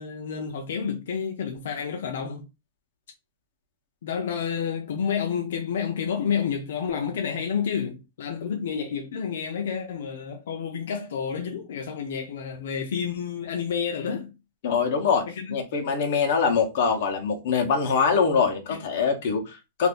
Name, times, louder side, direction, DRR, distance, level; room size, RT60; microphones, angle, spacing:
voice 1, 0.0-2.5 4.0-14.3 15.4-15.6 18.7-18.8, left 7 dB, 80° left, 0.5 m, -30 dB
voice 2, 14.6-19.9, left 5 dB, 50° left, 0.8 m, -24 dB
2.6 x 2.5 x 3.5 m
supercardioid pair, 170°, 0 cm